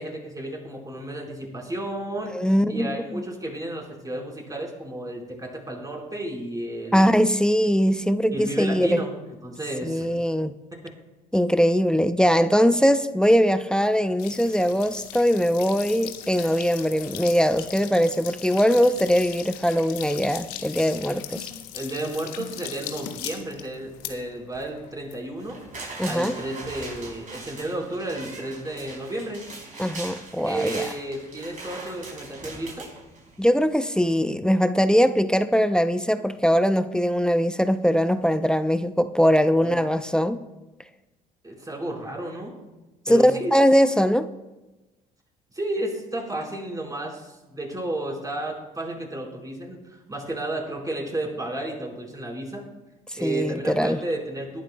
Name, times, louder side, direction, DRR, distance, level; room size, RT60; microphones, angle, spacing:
voice 1, 0.0-2.4 2.7-7.2 8.3-10.1 21.7-25.6 26.1-29.4 30.4-32.9 39.6-39.8 41.4-42.6 43.1-43.5 45.5-52.6 53.2-54.6, right 1 dB, 15° right, 4.6 m, -32 dB
voice 2, 2.3-3.2 6.9-8.9 9.8-10.5 11.3-21.5 26.0-26.3 29.8-30.8 33.4-40.4 43.1-44.3 53.1-54.0, equal, 5° left, 0.6 m, -21 dB
sound 1, 14.2-25.8, left 12 dB, 75° left, 1.0 m, -39 dB
sound 2, 25.4-33.6 33.9-34.0, right 3 dB, 40° right, 4.5 m, -40 dB
21.5 x 11.0 x 2.3 m
hypercardioid pair, 55°, 20 cm